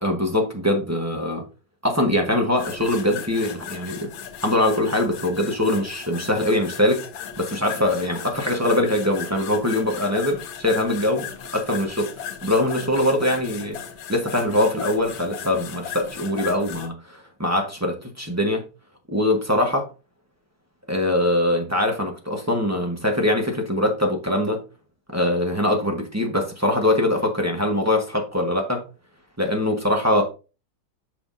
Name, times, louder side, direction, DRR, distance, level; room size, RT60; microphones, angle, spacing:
voice 1, 0.0-1.4 1.8-4.1 4.4-7.1 7.4-12.1 12.4-13.8 14.1-18.6 19.1-19.8 20.9-24.6 25.1-28.8 29.4-30.2, left 1 dB, 10° right, 0.8 m, -22 dB
sound 1, 2.5-16.9, left 8 dB, 85° left, 1.6 m, -37 dB
7.9 x 5.7 x 2.6 m
omnidirectional pair, 2.1 m